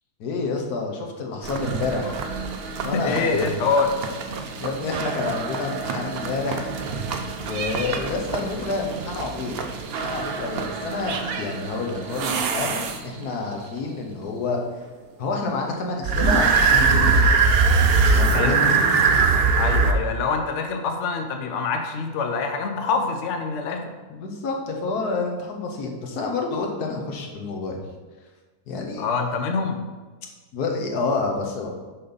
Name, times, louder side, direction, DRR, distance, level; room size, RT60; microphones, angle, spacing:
voice 1, 0.2-2.2 2.8-3.6 4.3-6.7 7.4-9.5 10.0-14.6 15.2-17.6 18.1-18.7 19.5-19.7 24.1-27.8 28.7-29.1 30.5-31.7, left 3 dB, 80° left, 1 dB, 1.5 m, -28 dB
sound 1, 1.4-13.3 16.0-19.9, right 4 dB, 65° right, 0.6 m, -23 dB
voice 2, 2.9-3.9 18.3-18.6 19.6-23.8 29.0-29.9, left 4 dB, 60° left, 5 dB, 0.9 m, -25 dB
6.6 x 5.1 x 4.0 m, 1.3 s
omnidirectional pair, 1.6 m